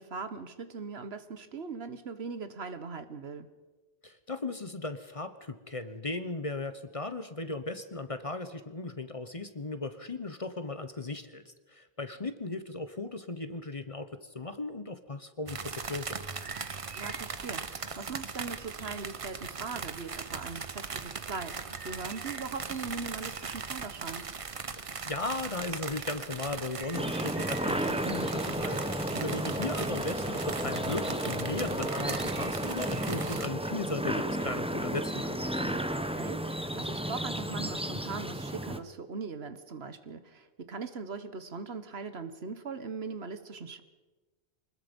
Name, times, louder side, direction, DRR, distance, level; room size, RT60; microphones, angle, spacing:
voice 1, 0.0-3.5 16.9-24.3 36.1-43.8, right 4 dB, 70° right, 11 dB, 1.5 m, -40 dB
voice 2, 4.0-16.3 24.7-35.4, left 3 dB, 35° left, 11 dB, 1.0 m, -37 dB
sound 1, 15.5-33.5, right 5 dB, 35° right, 0.7 m, -39 dB
sound 2, 26.9-38.8, right 1 dB, 5° right, 0.9 m, -33 dB
25.0 x 20.5 x 5.3 m, 1.2 s
omnidirectional pair, 1.1 m